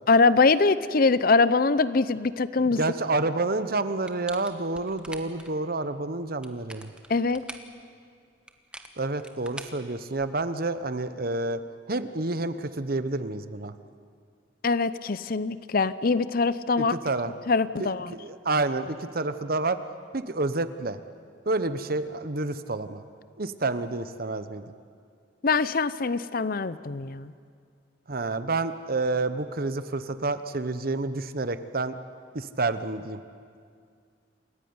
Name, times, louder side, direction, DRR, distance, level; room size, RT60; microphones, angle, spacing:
voice 1, 0.1-2.8 7.1-7.4 14.6-16.9 17.5-18.1 25.4-27.3, left 4 dB, 50° left, 15 dB, 0.7 m, -23 dB
voice 2, 2.6-6.9 9.0-11.6 11.9-13.7 16.8-17.3 17.8-19.8 20.1-21.0 21.5-23.0 23.4-24.6 28.1-31.9 32.3-33.2, right 2 dB, 50° right, 12 dB, 1.0 m, -29 dB
sound 1, 4.0-5.5 6.3-7.7 8.5-10.5, right 1 dB, 5° right, 1.3 m, -44 dB
28.0 x 16.0 x 9.6 m, 2.2 s
head